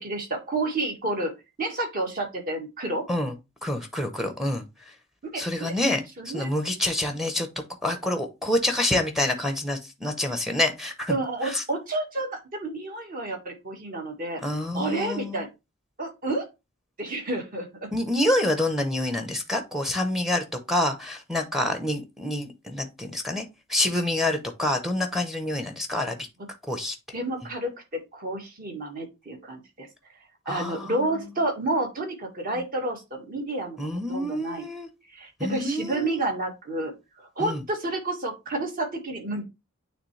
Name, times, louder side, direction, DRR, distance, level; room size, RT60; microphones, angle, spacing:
voice 1, 0.0-3.0 5.2-5.7 6.2-6.5 11.1-14.4 14.7-15.5 16.0-16.5 17.0-17.9 27.1-29.9 30.4-33.8 34.1-34.7 35.1-39.4, right 2 dB, 40° right, 1.6 m, -30 dB
voice 2, 3.6-4.6 5.4-7.5 7.8-11.2 11.4-11.6 14.4-15.4 17.9-23.4 23.7-26.2 26.7-26.9 30.5-31.1 33.8-34.9 35.4-36.2 37.4-37.6, left 1 dB, ahead, 0.8 m, -27 dB
8.8 x 3.4 x 3.2 m
head